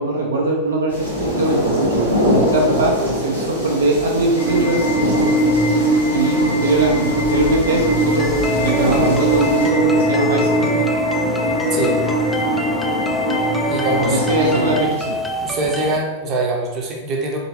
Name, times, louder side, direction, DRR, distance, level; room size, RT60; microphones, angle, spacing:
voice 1, 0.0-5.0 6.1-10.9 14.0-15.2, right 2 dB, 70° right, -2 dB, 0.5 m, -21 dB
sound 1, 0.9-9.7, equal, 90° right, 1.1 m, -23 dB
sound 2, 4.4-14.8, right 1 dB, 50° left, 0.6 m, -20 dB
sound 3, 8.2-16.0, left 1 dB, 5° left, 0.3 m, -25 dB
voice 2, 11.7-12.0 13.7-14.7 15.4-17.4, right 2 dB, 35° right, 0 dB, 0.7 m, -23 dB
3.6 x 2.6 x 2.8 m, 1.1 s
figure-of-eight pair, 90°, 0 cm